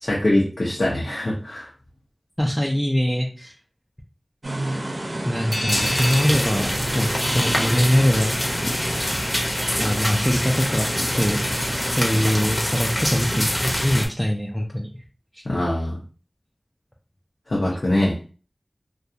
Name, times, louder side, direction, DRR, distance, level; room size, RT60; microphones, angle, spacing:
voice 1, 0.0-1.7 15.4-16.0 17.5-18.2, left 1 dB, 70° left, -5 dB, 0.6 m, -23 dB
voice 2, 2.4-3.5 5.2-8.4 9.8-10.9 11.2-11.5 11.9-14.9 15.3-15.4, equal, 5° left, -1 dB, 0.4 m, -23 dB
sound 1, 4.4-12.6, right 1 dB, 65° right, 0.6 m, -32 dB
sound 2, 5.5-8.6, left 1 dB, 85° left, 1.0 m, -30 dB
sound 3, 5.7-14.1, equal, 35° left, 0.7 m, -25 dB
2.3 x 2.3 x 2.7 m, 0.38 s
wide cardioid pair, 45°, 0 cm